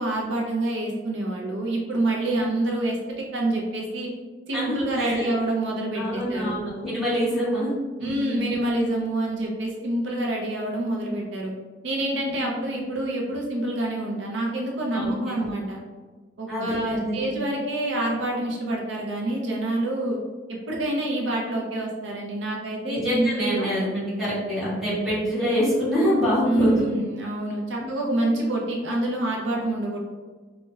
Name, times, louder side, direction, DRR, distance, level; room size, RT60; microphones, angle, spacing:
voice 1, 0.0-3.0 3.3-4.1 4.5-6.6 8.0-11.5 11.8-15.8 16.4-20.2 20.7-23.7 26.4-30.0, right 1 dB, 75° right, -1 dB, 0.5 m, -27 dB
voice 2, 4.5-5.3 5.9-7.7 8.0-8.5 12.2-12.6 14.9-15.4 16.5-17.3 22.8-26.9 27.8-27.9, equal, ahead, -11 dB, 1.3 m, -26 dB
4.1 x 2.1 x 2.3 m, 1.4 s
head